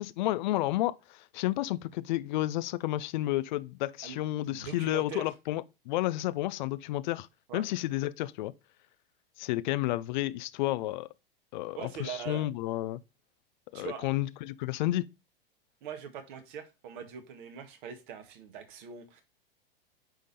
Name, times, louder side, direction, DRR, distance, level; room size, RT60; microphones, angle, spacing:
voice 1, 0.0-7.3 7.5-8.5 9.4-11.1 11.5-13.0 13.7-15.0, left 16 dB, 50° left, 0.5 m, -31 dB
voice 2, 4.0-5.3 7.5-7.6 11.8-12.4 13.7-14.1 15.8-19.2, right 7 dB, 55° right, 1.7 m, -42 dB
9.2 x 3.6 x 4.2 m
hypercardioid pair, 105°, 30 cm